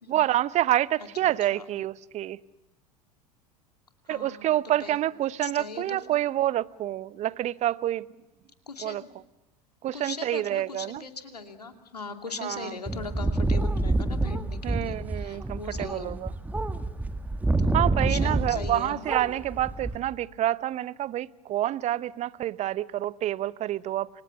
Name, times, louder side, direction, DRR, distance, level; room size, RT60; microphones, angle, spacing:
voice 1, 0.1-2.4 4.1-8.1 8.8-9.0 9.8-11.0 12.4-12.8 14.6-16.3 17.7-24.1, right 13 dB, 35° right, 0.9 m, -28 dB
voice 2, 1.2-1.6 4.1-5.0 5.4-6.2 8.7-9.1 9.9-16.2 17.6-19.0, left 4 dB, 85° left, 2.6 m, -40 dB
sound 1, 12.9-18.8 19.0-20.0, right 2 dB, 10° right, 1.9 m, -27 dB
29.5 x 25.0 x 7.2 m
figure-of-eight pair, 75°, 20 cm